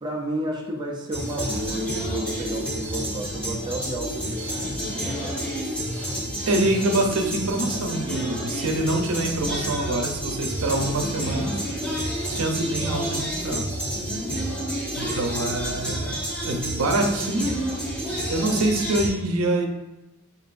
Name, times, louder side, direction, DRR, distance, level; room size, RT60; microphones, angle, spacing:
voice 1, 0.0-4.6 5.0-5.4 15.0-15.7, right 1 dB, 20° right, -2 dB, 0.5 m, -32 dB
sound 1, 1.1-19.1, right 1 dB, 5° left, 1.2 m, -29 dB
voice 2, 6.5-11.5 12.2-13.7 14.9-16.2 16.4-17.5 18.3-19.7, right 1 dB, 70° right, 2 dB, 0.7 m, -25 dB
7.8 x 2.6 x 2.6 m, 1.0 s
head